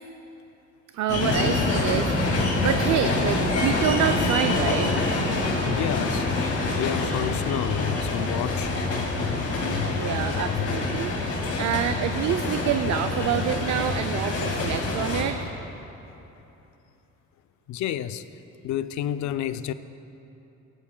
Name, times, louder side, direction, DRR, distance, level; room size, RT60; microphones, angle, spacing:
voice 1, 0.9-4.9 10.0-15.4, right 10 dB, 70° right, 0.4 m, -27 dB
sound 1, 1.1-15.2, left 2 dB, 50° left, 2.1 m, -26 dB
voice 2, 5.1-10.9 13.2-13.5 15.6-16.2 17.7-18.2 18.6-19.7, left 11 dB, 70° left, 0.5 m, -32 dB
17.0 x 10.0 x 2.2 m
cardioid pair, 90°, 30 cm